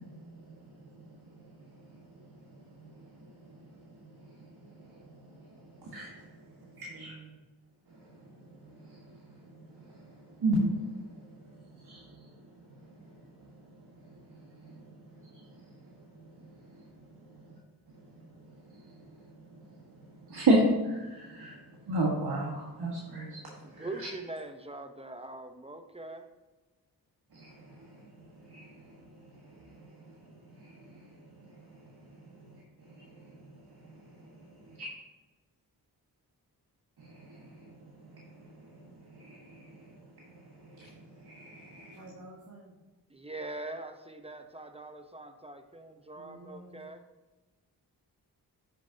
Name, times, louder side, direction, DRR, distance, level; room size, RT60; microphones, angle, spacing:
voice 1, 0.0-7.1 7.9-17.5 17.9-24.1 27.3-34.8 37.0-42.1, right 1 dB, 70° right, -4 dB, 1.7 m, -37 dB
voice 2, 6.6-7.4 41.9-42.8 46.2-46.8, right 2 dB, 45° right, -4 dB, 1.8 m, -50 dB
voice 3, 23.6-26.3 43.1-47.0, right 2 dB, 15° right, 7 dB, 0.8 m, -42 dB
9.9 x 6.5 x 2.8 m, 1.2 s
cardioid pair, 65°, 40 cm